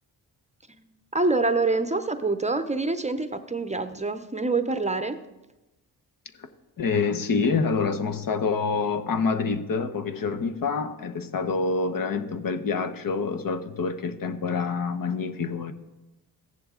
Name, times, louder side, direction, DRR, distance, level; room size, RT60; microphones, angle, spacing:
voice 1, 0.7-5.2, right 3 dB, 15° right, 10 dB, 0.6 m, -26 dB
voice 2, 6.8-15.7, left 4 dB, 55° left, 10 dB, 1.0 m, -27 dB
14.0 x 10.5 x 3.7 m, 1.0 s
cardioid pair, 80°, 39 cm